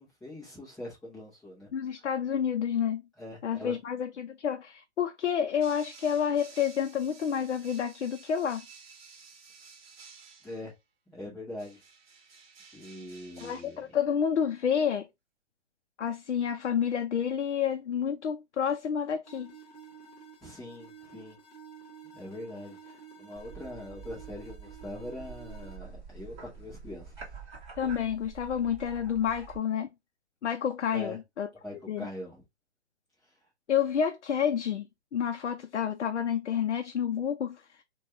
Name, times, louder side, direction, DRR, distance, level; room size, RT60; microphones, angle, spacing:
voice 1, 0.0-1.7 3.2-3.7 10.4-10.7 11.1-11.8 12.7-13.8 20.4-21.4 22.0-27.1 30.9-31.2 31.6-32.4 33.2-33.3, left 1 dB, ahead, 0.4 m, -42 dB
voice 2, 1.7-3.0 3.4-8.6 13.4-15.1 16.0-19.5 27.8-29.9 30.4-31.5 31.9-32.1 33.7-37.6, left 8 dB, 90° left, 0.5 m, -29 dB
sound 1, 5.6-10.7 11.6-13.9, right 5 dB, 60° right, 0.8 m, -53 dB
sound 2, 19.3-25.8, right 6 dB, 35° left, 1.0 m, -51 dB
sound 3, 23.4-29.6, right 5 dB, 25° right, 1.0 m, -47 dB
3.2 x 2.2 x 2.5 m
hypercardioid pair, 140°, 34 cm